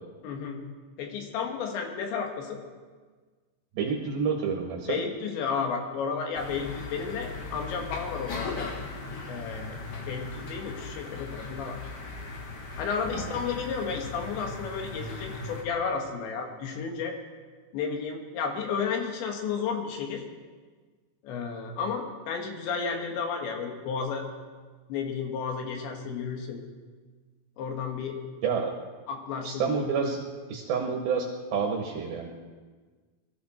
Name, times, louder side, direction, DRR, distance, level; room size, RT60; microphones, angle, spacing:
voice 1, 0.2-0.6 1.0-2.6 4.9-8.7 9.3-9.8 10.1-11.8 12.8-17.2 17.7-20.2 21.2-24.2 24.9-26.6 27.6-28.2 29.1-29.9, left 5 dB, 85° left, 3 dB, 4.0 m, -32 dB
voice 2, 3.8-5.0 13.1-13.4 28.4-28.7 29.4-30.2 30.5-32.3, right 5 dB, 65° right, 1 dB, 2.9 m, -29 dB
sound 1, 6.3-15.6, left 4 dB, 55° left, 1.8 m, -38 dB
22.5 x 14.0 x 4.4 m, 1.4 s
omnidirectional pair, 5.0 m